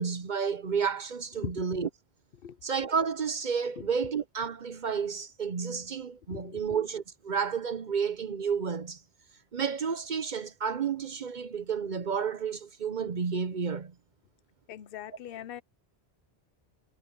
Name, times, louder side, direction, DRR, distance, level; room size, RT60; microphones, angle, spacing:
voice 1, 0.0-1.9 2.6-9.0 9.5-13.9, right 6 dB, 50° right, 0.8 m, -31 dB
voice 2, 6.3-6.6 14.7-15.6, left 10 dB, 60° left, 0.9 m, -40 dB
omnidirectional pair, 1.1 m